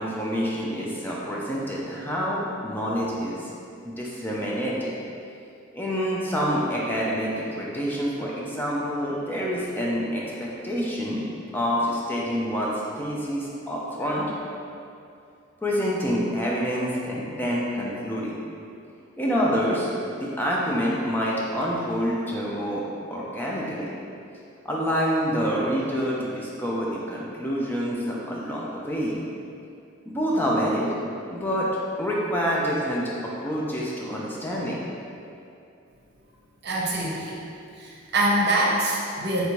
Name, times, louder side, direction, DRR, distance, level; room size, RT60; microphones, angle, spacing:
voice 1, 0.0-3.5 3.8-4.9 5.7-11.2 11.5-14.3 15.6-18.4 19.2-23.9 24.6-29.2 30.1-30.9 31.3-31.7 32.0-34.9, equal, 10° left, -5 dB, 0.4 m, -27 dB
voice 2, 36.6-37.4 37.8-39.4, right 1 dB, 55° right, -3 dB, 0.7 m, -24 dB
3.3 x 2.7 x 4.5 m, 2.5 s
head